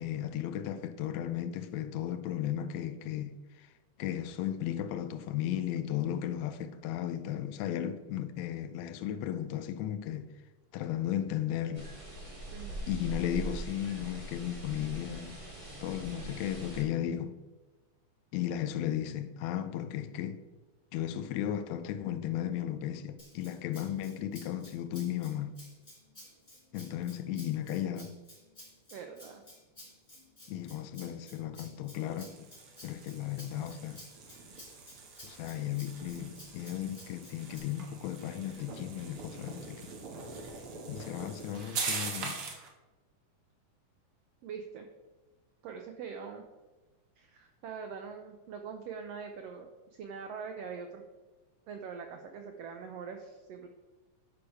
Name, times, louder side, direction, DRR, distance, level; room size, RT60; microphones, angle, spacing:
voice 1, 0.0-3.7 4.0-10.3 10.7-11.9 12.9-15.4 15.8-17.4 18.3-20.4 20.9-25.6 26.7-28.2 30.5-32.5 32.8-34.0 35.2-39.9 40.9-42.4, left 11 dB, 75° left, 1.7 m, -35 dB
sound 1, 11.7-16.8, right 1 dB, 15° right, 1.4 m, -42 dB
voice 2, 12.5-12.8 28.9-29.4 44.4-44.9 45.6-46.4 47.2-51.0 51.7-53.7, right 6 dB, 90° right, 1.4 m, -43 dB
Rattle (instrument), 23.2-37.6, left 1 dB, 15° left, 2.6 m, -54 dB
sound 2, 32.0-42.7, right 4 dB, 55° right, 1.9 m, -42 dB
11.5 x 4.8 x 4.8 m
omnidirectional pair, 3.6 m